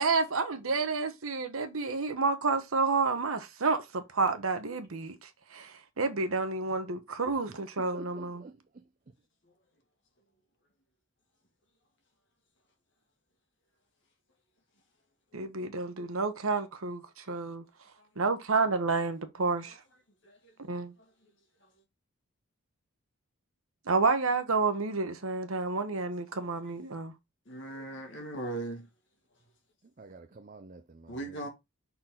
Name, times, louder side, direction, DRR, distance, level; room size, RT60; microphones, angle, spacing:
voice 1, 0.0-8.4 15.3-17.6 18.2-19.8 20.7-20.9 23.9-27.1, right 4 dB, 80° right, 1.0 m, -30 dB
voice 2, 7.8-8.8 30.0-31.2, right 3 dB, 40° right, 0.5 m, -49 dB
voice 3, 20.2-20.5 21.6-21.7 27.5-28.9 31.1-31.5, right 2 dB, 55° left, 2.1 m, -39 dB
5.8 x 4.3 x 3.8 m
head